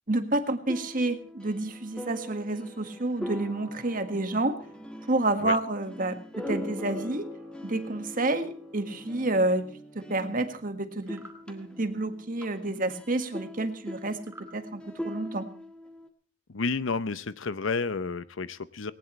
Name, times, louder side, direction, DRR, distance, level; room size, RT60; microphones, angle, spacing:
voice 1, 0.1-4.6 5.1-7.3 7.6-9.7 10.0-14.2 14.5-15.5, right 2 dB, 45° right, 8 dB, 1.7 m, -29 dB
sound 1, 0.7-10.7 11.0-16.1, left 1 dB, 5° left, 1.9 m, -42 dB
sound 2, 11.0-11.4 14.2-14.5, right 1 dB, 15° right, 2.3 m, -48 dB
voice 2, 16.5-18.9, left 4 dB, 80° left, 15 dB, 0.7 m, -30 dB
19.5 x 19.0 x 3.2 m, 0.40 s
head